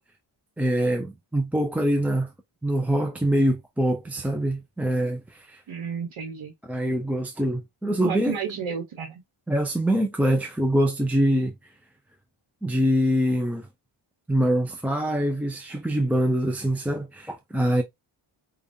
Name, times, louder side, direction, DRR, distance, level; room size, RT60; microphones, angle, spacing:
voice 1, 0.6-2.3 2.6-5.6 6.6-8.4 9.5-11.5 12.6-13.7 14.3-17.8, right 1 dB, 5° right, 0.3 m, -24 dB
voice 2, 5.7-6.5 8.0-9.1, right 7 dB, 70° right, 1.1 m, -32 dB
5.1 x 2.3 x 2.6 m
wide cardioid pair, 135°, 49 cm